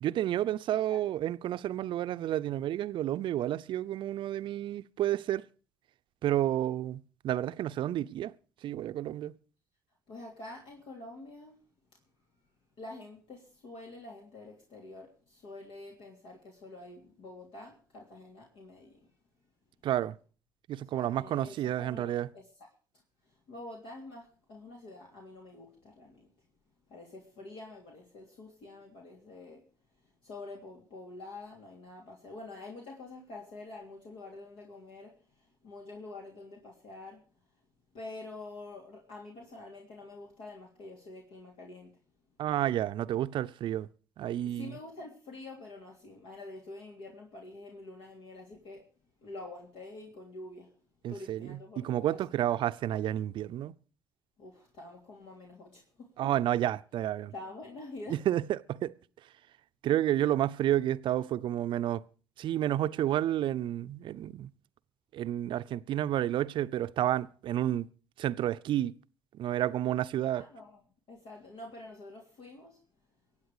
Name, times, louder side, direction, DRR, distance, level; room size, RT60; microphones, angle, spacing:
voice 1, 0.0-5.5 6.2-8.3 8.6-9.3 19.8-20.2 20.7-22.3 42.4-43.9 44.2-44.8 51.0-53.7 56.2-57.3 58.1-58.9 59.8-62.0 62.4-64.5 65.1-67.9 68.2-68.9 69.3-70.5, right 12 dB, 55° right, 0.6 m, -30 dB
voice 2, 0.7-1.0 10.1-11.6 12.8-19.1 20.9-22.5 23.2-26.3 26.9-29.6 30.0-37.2 37.9-41.9 44.5-48.9 49.2-50.7 51.1-52.2 54.4-56.3 57.3-58.2 70.3-70.8 71.1-72.8, left 2 dB, 65° left, 3.0 m, -47 dB
24.0 x 8.8 x 4.9 m
hypercardioid pair, 50°, 10 cm